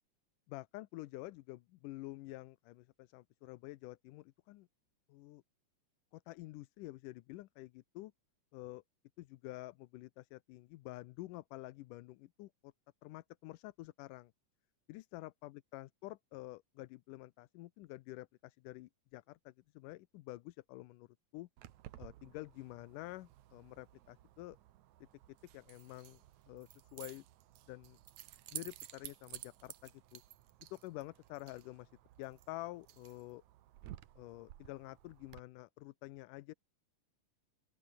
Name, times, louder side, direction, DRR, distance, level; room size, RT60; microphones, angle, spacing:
voice 1, 0.5-4.7 5.1-5.4 6.1-8.1 8.5-8.8 9.2-12.7 13.0-14.3 14.9-21.1 21.3-21.5 22.0-24.6 25.5-26.2 26.5-27.3 27.7-28.0 28.5-30.2 30.7-31.9 32.2-33.4 34.2-36.5, left 18 dB, 85° left, 2.3 m, -49 dB
Keys jangling, 21.6-35.4, right 14 dB, 70° right, 2.3 m, -54 dB
open air
omnidirectional pair, 3.6 m